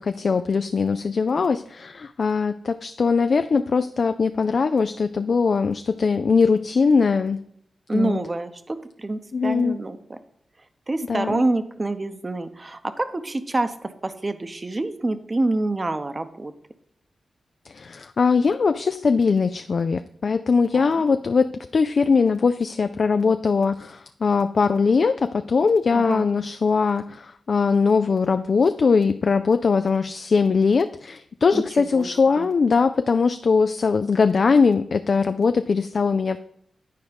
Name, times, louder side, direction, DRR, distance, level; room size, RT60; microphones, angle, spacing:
voice 1, 0.0-7.4 7.9-8.2 9.3-9.8 11.1-11.4 17.7-36.4, left 5 dB, 65° left, 10 dB, 0.3 m, -21 dB
voice 2, 7.9-10.2 10.9-16.5 20.7-21.0 25.9-26.3 31.5-32.1 32.4-32.5, right 2 dB, 35° right, 10 dB, 0.8 m, -27 dB
9.5 x 4.6 x 5.2 m, 0.68 s
cardioid pair, 55°, 0 cm